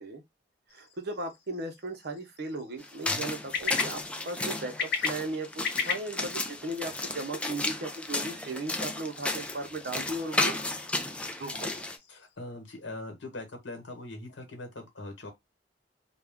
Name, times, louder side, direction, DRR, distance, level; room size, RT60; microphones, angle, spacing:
sound 1, 0.7-12.3, left 6 dB, 60° left, 0.7 m, -39 dB
voice 1, 0.7-5.5 5.8-10.6 11.4-11.7, right 2 dB, 60° right, 0.7 m, -37 dB
sound 2, 2.8-12.0, left 2 dB, 5° left, 0.3 m, -33 dB
voice 2, 12.1-15.3, left 2 dB, 85° left, 1.1 m, -41 dB
2.3 x 2.1 x 3.4 m
head